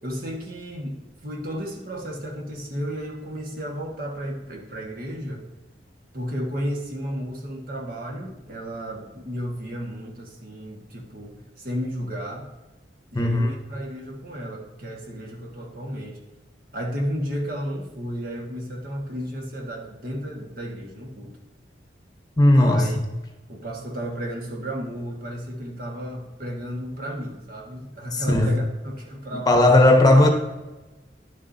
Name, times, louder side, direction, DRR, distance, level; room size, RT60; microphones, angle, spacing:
voice 1, 0.0-5.5 6.1-12.5 13.1-16.2 16.7-21.4 22.5-23.0 23.5-29.6, equal, 50° right, 0 dB, 1.6 m, -33 dB
voice 2, 13.1-13.5 22.4-22.9 28.1-28.5 29.3-30.3, left 1 dB, 20° left, 4 dB, 1.0 m, -16 dB
11.0 x 7.2 x 2.7 m, 1.1 s
head